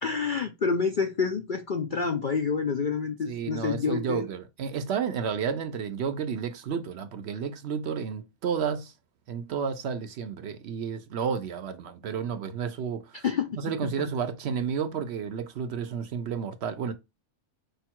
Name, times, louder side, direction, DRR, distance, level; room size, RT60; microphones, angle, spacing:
voice 1, 0.0-4.3 13.2-13.9, left 5 dB, 60° left, 0.5 m, -28 dB
voice 2, 3.3-8.9 9.3-13.2 13.5-16.9, right 7 dB, 60° right, 0.7 m, -31 dB
5.1 x 2.3 x 4.4 m
omnidirectional pair, 1.5 m